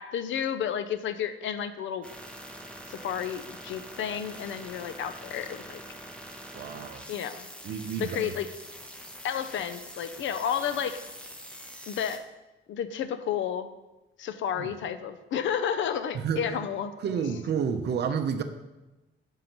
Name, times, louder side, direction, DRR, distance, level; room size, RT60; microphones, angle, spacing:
voice 1, 0.0-2.1 2.9-5.8 7.1-7.5 8.0-8.5 9.2-11.0 11.9-12.2 12.7-13.7 14.2-16.9, left 8 dB, 70° left, 11 dB, 0.5 m, -31 dB
sound 1, 2.0-12.2, equal, 5° left, 0.6 m, -44 dB
voice 2, 6.5-7.0 7.6-8.3 14.6-14.7 16.2-16.5 17.0-18.4, right 7 dB, 55° right, 8 dB, 0.6 m, -30 dB
5.4 x 5.2 x 5.9 m, 1.1 s
cardioid pair, 165°, 21 cm